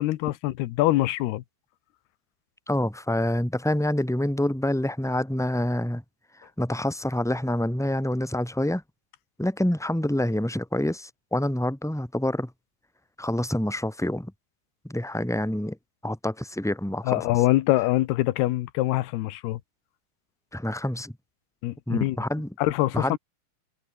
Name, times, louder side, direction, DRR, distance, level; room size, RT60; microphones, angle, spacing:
voice 1, 0.0-1.4 17.0-19.6 21.6-22.2 22.6-23.2, left 16 dB, 85° left, 3.0 m, -24 dB
voice 2, 2.7-6.0 6.4-8.8 9.4-12.5 13.2-14.3 14.8-15.8 16.0-17.3 20.5-21.1 21.9-22.5 22.9-23.2, left 1 dB, ahead, 2.0 m, -27 dB
omnidirectional pair, 4.5 m